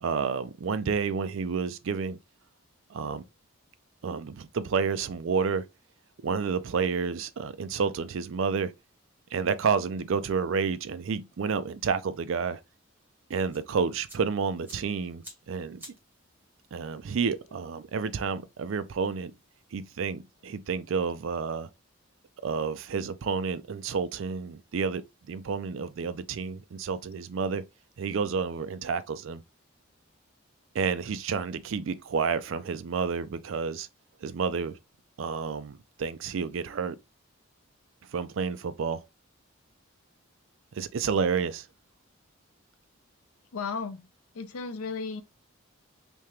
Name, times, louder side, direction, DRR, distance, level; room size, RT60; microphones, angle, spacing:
voice 1, 0.0-2.2 2.9-3.2 4.0-5.7 6.2-8.7 9.3-12.6 13.3-15.8 16.7-19.3 19.7-21.7 22.4-27.7 28.0-29.4 30.7-33.9 34.2-34.8 35.2-37.0 38.1-39.1 40.7-41.7, right 5 dB, 65° right, 0.4 m, -30 dB
sound 1, 13.5-19.9, equal, 10° right, 0.9 m, -55 dB
voice 2, 43.5-44.1 44.3-45.2, left 5 dB, 85° left, 0.5 m, -34 dB
3.5 x 2.8 x 3.1 m
head